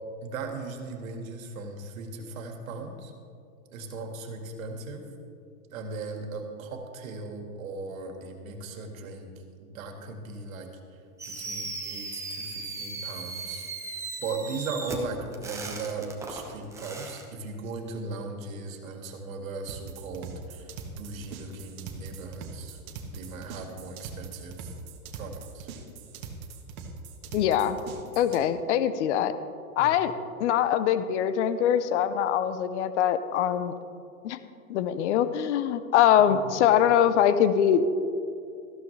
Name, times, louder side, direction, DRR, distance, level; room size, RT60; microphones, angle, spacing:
voice 1, 0.2-3.1 3.7-5.0 5.7-9.3 9.6-10.7 11.3-24.7 25.2-25.7 29.8-29.9 36.3-36.5, right 3 dB, 65° right, 4 dB, 2.0 m, -38 dB
Fireworks, 11.2-17.2, right 3 dB, 5° right, 0.9 m, -37 dB
sound 1, 19.7-28.4, right 5 dB, 35° right, 1.4 m, -42 dB
voice 2, 27.3-27.8 28.2-29.3 29.8-30.1 30.4-33.7 34.2-34.4 34.7-37.8, left 9 dB, 55° left, 12 dB, 0.8 m, -23 dB
14.0 x 12.0 x 3.3 m, 2.5 s
hypercardioid pair, 140°, 44 cm